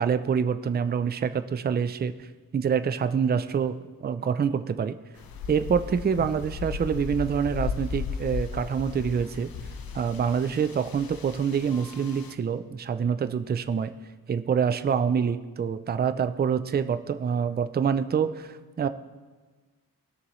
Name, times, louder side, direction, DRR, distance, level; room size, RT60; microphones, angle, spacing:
voice 1, 0.0-2.1 2.5-4.9 5.5-9.5 9.9-13.9 14.3-18.9, right 7 dB, 30° right, 11 dB, 0.4 m, -26 dB
sound 1, 5.2-12.3, left 5 dB, 70° left, 0.8 m, -36 dB
19.5 x 6.6 x 3.1 m, 1.4 s
wide cardioid pair, 135°, 36 cm